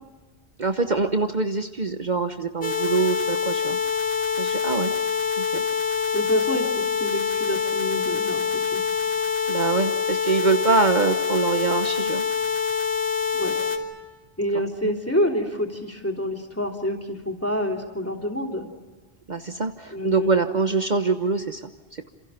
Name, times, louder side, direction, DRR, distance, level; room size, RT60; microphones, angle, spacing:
voice 1, 0.6-3.8 4.4-4.9 5.4-5.6 9.5-12.2 14.8-14.9 19.3-22.1, right 4 dB, 45° right, 7 dB, 1.2 m, -24 dB
sound 1, 2.6-13.8, left 6 dB, 60° left, 2.9 m, -25 dB
voice 2, 6.1-8.8 13.3-13.5 14.4-18.7 19.9-20.3, equal, 15° left, 2 dB, 3.2 m, -27 dB
28.5 x 27.5 x 5.8 m, 1.2 s
omnidirectional pair, 1.1 m